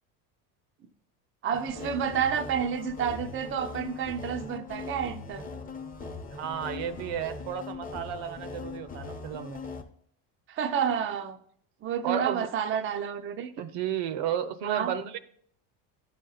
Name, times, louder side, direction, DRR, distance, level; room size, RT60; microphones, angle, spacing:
voice 1, 1.4-5.4 10.5-11.4 11.8-13.5 14.6-14.9, right 7 dB, 30° right, 0.5 m, -30 dB
sound 1, 1.5-9.8, left 4 dB, 20° left, 0.7 m, -40 dB
voice 2, 6.3-9.6 12.0-12.5 13.6-15.2, right 9 dB, 70° right, 0.8 m, -33 dB
11.0 x 4.2 x 3.8 m
supercardioid pair, 105°, 46 cm